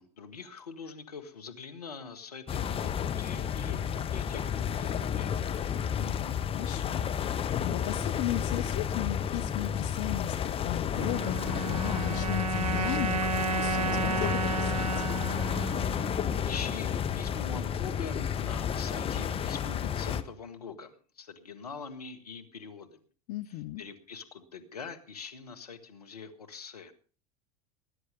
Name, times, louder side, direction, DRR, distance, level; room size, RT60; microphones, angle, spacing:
voice 1, 0.0-5.5 16.4-20.9 21.2-23.0 23.8-26.9, left 5 dB, 85° left, 7 dB, 1.9 m, -43 dB
sound 1, 2.5-20.2, left 8 dB, 30° left, 1.5 m, -31 dB
voice 2, 6.0-15.1 23.3-23.8, left 14 dB, 55° left, 11 dB, 0.9 m, -36 dB
sound 2, 10.9-17.3, right 4 dB, 85° right, 0.9 m, -33 dB
19.5 x 10.0 x 5.2 m, 0.40 s
hypercardioid pair, 85°, 19 cm